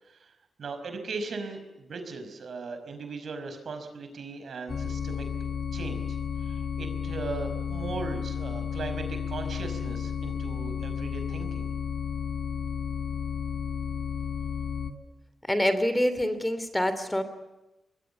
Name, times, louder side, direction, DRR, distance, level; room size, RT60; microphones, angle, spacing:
voice 1, 0.6-5.2 5.7-6.2 6.4-11.7, right 4 dB, 65° right, 7 dB, 5.3 m, -38 dB
sound 1, 4.7-14.9, left 7 dB, 60° left, 2.3 m, -32 dB
voice 2, 15.5-17.2, left 1 dB, 10° left, 11 dB, 2.9 m, -26 dB
25.5 x 21.5 x 7.1 m, 0.99 s
cardioid pair, 80°, 0 cm